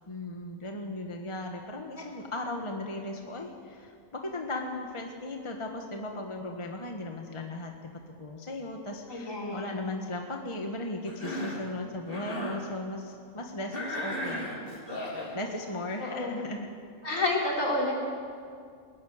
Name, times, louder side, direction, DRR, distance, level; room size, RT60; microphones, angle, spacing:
voice 1, 0.1-14.5 15.3-16.7, left 2 dB, 20° left, 2 dB, 1.4 m, -37 dB
voice 2, 9.1-9.8 16.0-16.3 17.0-17.9, left 2 dB, 55° left, -2 dB, 4.1 m, -30 dB
Cough, 11.1-11.7 12.0-12.6 13.7-15.3, equal, 35° left, 3.6 m, -35 dB
22.0 x 13.0 x 9.4 m, 2.2 s
omnidirectional pair, 1.6 m